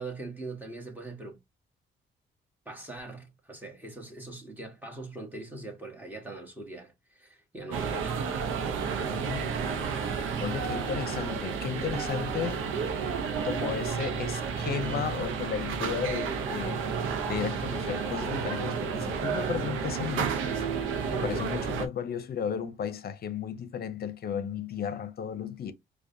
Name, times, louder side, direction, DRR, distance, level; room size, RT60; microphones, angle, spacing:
voice 1, 0.0-1.4 2.6-8.2 21.1-21.4, right 2 dB, 10° right, 1.5 m, -41 dB
sound 1, 7.7-21.9, right 6 dB, 90° right, 0.7 m, -31 dB
voice 2, 9.1-9.5 10.4-12.6 13.4-16.8 17.2-20.4 21.2-25.7, left 8 dB, 50° left, 0.7 m, -34 dB
4.8 x 2.3 x 2.6 m
cardioid pair, 90°, 20 cm